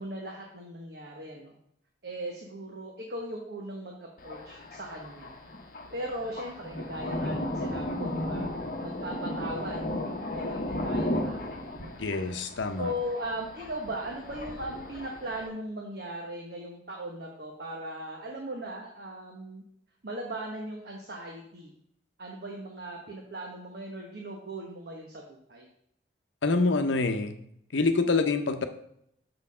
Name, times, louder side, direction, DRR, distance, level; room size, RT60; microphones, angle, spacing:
voice 1, 0.0-1.6 2.0-5.4 5.9-8.5 8.8-9.9 10.3-12.3 12.8-19.6 20.0-21.7 22.2-25.7, right 1 dB, 60° right, 0 dB, 1.0 m, -38 dB
Thunder, 4.2-15.5, left 1 dB, 45° left, 1.0 m, -35 dB
voice 2, 12.0-12.9 26.4-27.4 27.7-28.6, left 3 dB, 90° left, 8 dB, 0.7 m, -26 dB
6.7 x 4.3 x 5.5 m, 0.72 s
head